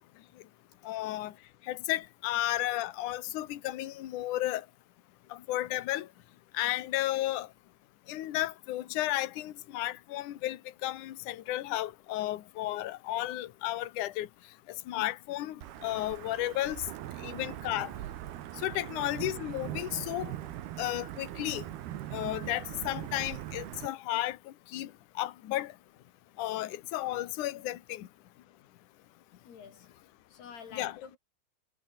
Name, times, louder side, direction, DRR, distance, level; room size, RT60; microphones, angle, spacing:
voice 1, 0.8-1.3 1.7-4.7 5.3-6.1 6.5-7.5 8.1-14.3 14.9-16.9 17.2-17.9 18.6-20.3 20.8-21.6 22.1-25.7 26.4-28.1 30.7-31.0, left 15 dB, 60° left, 2.6 m, -33 dB
Wind / Thunder / Rain, 15.6-23.9, right 13 dB, 80° right, 3.3 m, -41 dB
voice 2, 29.4-29.9 30.3-31.2, left 7 dB, 80° left, 6.1 m, -47 dB
omnidirectional pair, 4.5 m